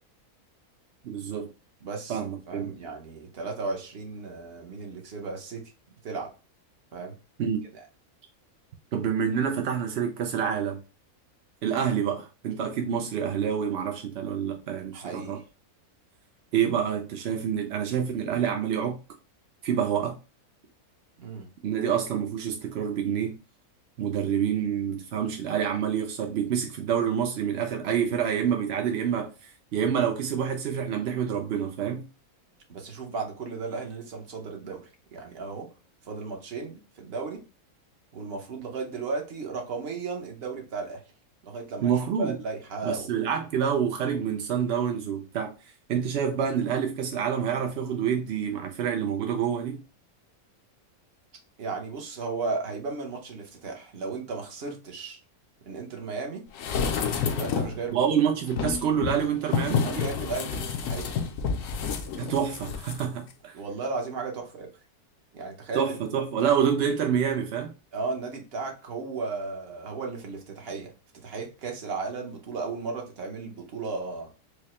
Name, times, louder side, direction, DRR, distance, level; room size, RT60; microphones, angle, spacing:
voice 1, 1.0-1.5 2.1-2.8 7.4-7.6 8.9-10.8 11.6-15.4 16.5-19.0 19.6-20.2 21.6-23.3 24.0-32.1 41.8-42.4 42.8-45.5 45.9-49.8 57.9-59.9 62.1-63.5 65.7-67.7, right 8 dB, 70° right, 0.6 m, -27 dB
voice 2, 1.8-2.2 2.5-5.7 6.0-6.3 6.9-7.1 14.9-15.4 21.2-21.5 32.7-35.7 36.1-37.4 38.1-41.0 41.4-43.1 51.6-55.2 55.7-56.4 57.3-58.0 59.8-61.1 63.5-64.7 65.3-65.9 67.9-70.9 71.2-74.3, right 4 dB, 50° right, 0.9 m, -35 dB
sound 1, 56.6-57.8 58.5-63.0 63.3-63.4, left 6 dB, 70° left, 0.9 m, -29 dB
4.7 x 2.0 x 3.0 m
omnidirectional pair, 1.6 m